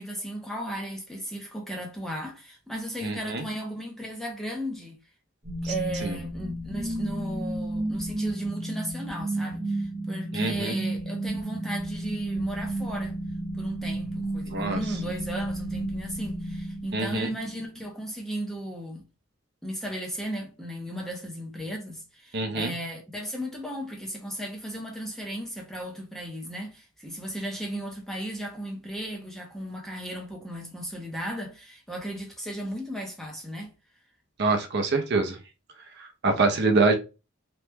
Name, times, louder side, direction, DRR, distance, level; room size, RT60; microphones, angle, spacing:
voice 1, 0.0-5.0 5.6-13.1 13.6-19.0 19.6-33.7, right 1 dB, ahead, 0.6 m, -35 dB
voice 2, 3.0-3.4 5.6-5.7 6.0-6.2 10.3-10.7 14.5-14.8 16.9-17.3 22.3-22.7 34.4-35.4 36.0-36.9, right 3 dB, 50° right, 0.5 m, -25 dB
sound 1, 5.4-17.4, right 1 dB, 35° right, 0.9 m, -32 dB
3.0 x 2.1 x 3.3 m
head